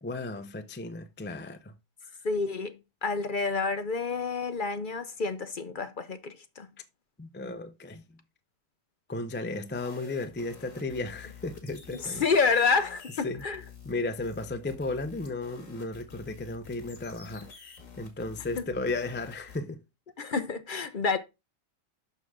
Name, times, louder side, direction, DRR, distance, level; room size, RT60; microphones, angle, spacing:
voice 1, 0.0-1.6 7.2-8.0 9.1-12.2 13.2-13.4 13.9-19.8, left 2 dB, 15° left, 0.4 m, -34 dB
voice 2, 2.2-6.7 11.9-13.6 18.6-18.7 20.2-21.2, left 4 dB, 45° left, 0.8 m, -29 dB
sound 1, 9.6-19.6, left 6 dB, 85° left, 2.4 m, -50 dB
6.7 x 6.3 x 3.6 m
omnidirectional pair, 1.3 m